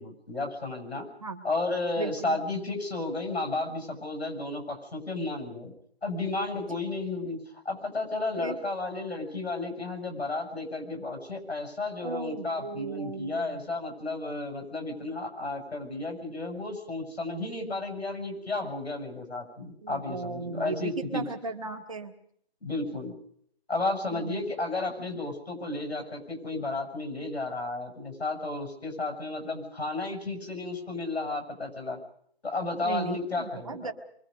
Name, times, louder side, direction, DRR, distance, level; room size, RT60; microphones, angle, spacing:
voice 1, 0.0-1.1 1.4-5.7 6.0-21.3 22.6-23.2 23.7-32.0 32.4-33.9, left 2 dB, 85° left, 3 dB, 7.1 m, -33 dB
voice 2, 2.0-2.4 8.4-8.6 12.0-13.6 18.6-18.7 19.8-22.1 24.1-24.4 32.8-33.9, right 4 dB, 35° right, 5 dB, 1.6 m, -36 dB
25.0 x 24.0 x 5.3 m, 0.66 s
hypercardioid pair, 175°, 31 cm